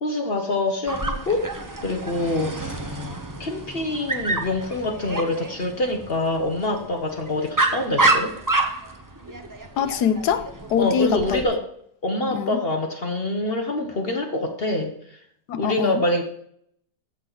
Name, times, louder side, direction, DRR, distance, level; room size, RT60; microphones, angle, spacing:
voice 1, 0.0-1.5 1.8-3.0 3.4-8.3 10.8-11.6 12.0-15.2 15.6-16.3, left 2 dB, 40° left, 4 dB, 1.0 m, -25 dB
Dog, 0.9-11.4, right 2 dB, 20° right, 0.5 m, -28 dB
voice 2, 9.8-11.4 12.3-12.6 15.5-16.0, left 8 dB, 75° left, 11 dB, 1.2 m, -24 dB
14.0 x 6.2 x 4.0 m, 0.69 s
omnidirectional pair, 1.8 m